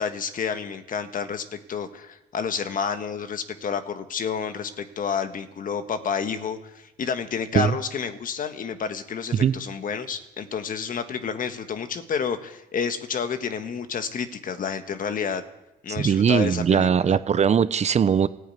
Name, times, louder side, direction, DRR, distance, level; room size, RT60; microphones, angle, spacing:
voice 1, 0.0-15.4 15.8-16.9, left 6 dB, 45° left, 9 dB, 1.6 m, -30 dB
voice 2, 15.9-18.3, right 7 dB, 35° right, 14 dB, 0.7 m, -20 dB
15.0 x 9.2 x 9.5 m, 0.95 s
supercardioid pair, 80°, 19 cm